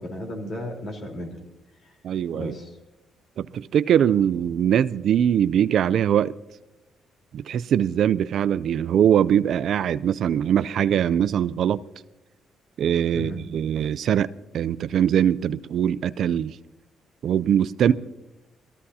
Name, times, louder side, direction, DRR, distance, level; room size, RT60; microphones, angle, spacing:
voice 1, 0.0-1.4 1.8-1.9 2.3-2.8 13.1-13.4 17.9-18.0, left 1 dB, 55° left, 3.7 m, -34 dB
voice 2, 2.0-2.5 3.4-6.3 7.3-11.8 12.8-14.3 14.5-16.6 17.2-17.9, right 9 dB, 65° right, 0.4 m, -22 dB
21.5 x 14.5 x 2.8 m
cardioid pair, 90°, 0 cm